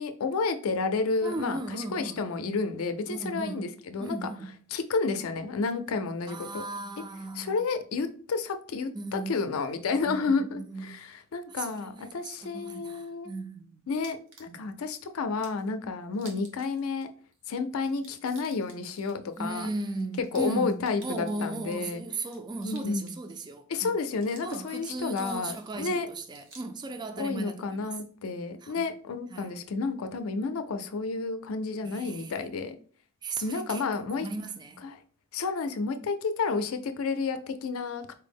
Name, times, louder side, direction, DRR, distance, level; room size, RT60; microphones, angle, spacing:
voice 1, 0.0-4.2 4.7-6.6 7.3-13.3 13.9-17.1 17.5-19.7 20.3-22.0 22.6-23.2 23.7-26.1 27.2-32.8 33.4-34.3 34.8-35.0 35.3-38.1, left 4 dB, 80° left, 0.4 m, -31 dB
voice 2, 1.2-2.3 3.1-3.7 4.0-4.6 6.3-7.6 8.9-9.4 10.1-11.0 11.5-13.8 14.5-14.7 19.4-23.9 24.4-27.9 28.6-28.9 29.3-29.5 31.8-32.3 33.2-34.8, right 2 dB, 20° right, 0.3 m, -37 dB
sound 1, 14.0-15.0 15.4-15.7 16.1-17.0 17.3-17.4 17.7-21.8 22.2-23.5 23.8-25.7 26.2-26.8, right 3 dB, 60° right, 0.9 m, -53 dB
4.3 x 2.0 x 3.4 m
head